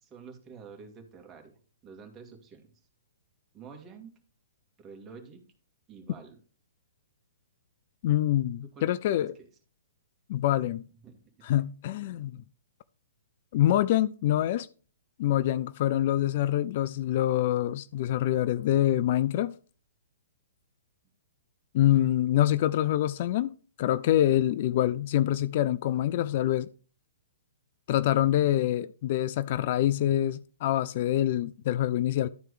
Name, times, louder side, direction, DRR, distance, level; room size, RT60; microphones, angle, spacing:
voice 1, 0.0-2.7 3.5-4.1 4.8-5.4 5.9-6.4 8.6-8.9 9.2-9.5 11.0-11.5, right 5 dB, 20° right, 2.1 m, -48 dB
voice 2, 8.0-9.3 10.3-10.8 11.4-12.4 13.5-14.7 15.2-19.5 21.7-26.7 27.9-32.3, left 12 dB, 50° left, 0.3 m, -25 dB
12.0 x 4.5 x 4.9 m
figure-of-eight pair, 120°, 0 cm